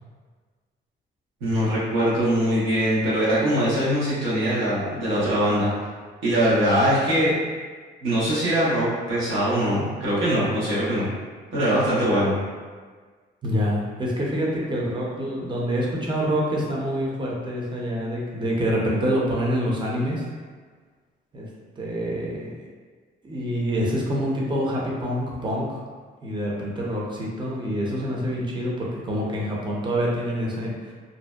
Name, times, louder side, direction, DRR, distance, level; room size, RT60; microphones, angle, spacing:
voice 1, 1.4-5.7 6.2-7.3 8.0-11.1 11.5-12.4, equal, 90° right, -9 dB, 1.0 m, -22 dB
voice 2, 13.4-20.2 21.3-21.5 21.8-22.7 23.2-25.8 26.2-30.9, equal, 25° right, -4 dB, 0.6 m, -26 dB
2.6 x 2.1 x 2.3 m, 1.5 s
cardioid pair, 90°, 20 cm